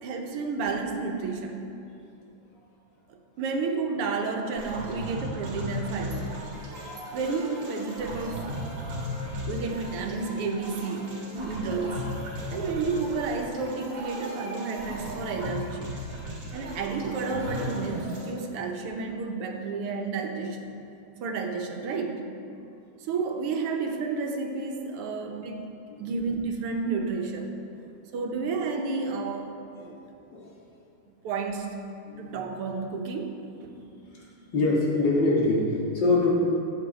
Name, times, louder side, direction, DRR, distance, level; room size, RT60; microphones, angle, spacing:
voice 1, 0.0-1.6 3.1-6.4 7.1-8.5 9.3-12.1 12.5-16.0 16.5-20.7 21.2-22.2 23.0-25.7 26.0-27.5 28.1-30.0 31.0-31.7 32.2-33.4, right 4 dB, 85° right, 3 dB, 1.9 m, -31 dB
sound 1, 4.6-18.3, equal, 65° right, 2.7 m, -36 dB
voice 2, 16.2-16.8 30.3-30.5 32.1-32.4 33.7-34.3 34.5-36.3, left 2 dB, 55° left, -5 dB, 2.4 m, -26 dB
14.0 x 8.2 x 4.1 m, 2.6 s
omnidirectional pair, 2.4 m